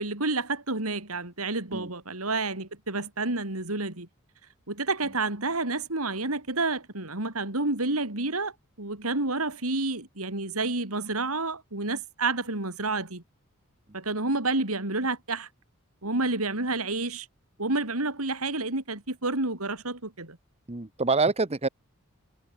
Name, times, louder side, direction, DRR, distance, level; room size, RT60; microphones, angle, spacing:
voice 1, 0.0-4.1 4.7-8.5 8.8-13.2 13.9-15.5 16.0-17.3 17.6-20.4, right 3 dB, 90° right, 4.2 m, -29 dB
voice 2, 20.7-21.7, right 3 dB, 30° right, 1.1 m, -26 dB
head